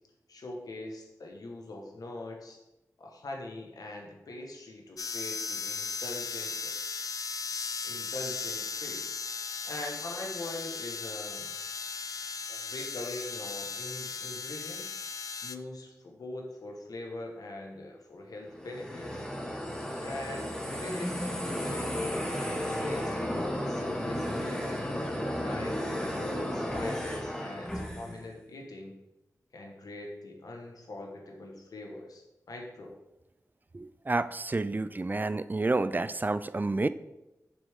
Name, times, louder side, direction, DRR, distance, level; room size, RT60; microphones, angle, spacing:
voice 1, 0.3-2.6 3.0-6.8 7.8-9.2 9.6-11.5 12.5-14.9 15.4-19.2 20.0-24.7 25.2-28.9 29.5-32.9, left 2 dB, 90° left, 1 dB, 1.3 m, -42 dB
sound 1, 5.0-15.6, left 5 dB, 70° left, 0.4 m, -37 dB
sound 2, 18.5-28.2, equal, 10° left, 1.4 m, -33 dB
voice 2, 33.7-36.9, right 2 dB, 30° right, 14 dB, 0.3 m, -29 dB
6.9 x 6.2 x 3.6 m, 0.95 s
wide cardioid pair, 60°, 6 cm